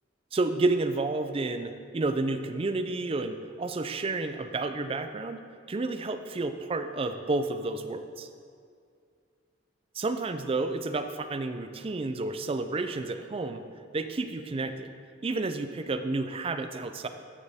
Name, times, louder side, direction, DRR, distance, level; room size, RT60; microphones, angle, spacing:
voice 1, 0.3-5.4 5.7-8.3 10.0-13.6 13.9-14.9 15.2-17.1, right 3 dB, 30° right, 9 dB, 0.4 m, -30 dB
12.5 x 6.5 x 3.5 m, 2.2 s
head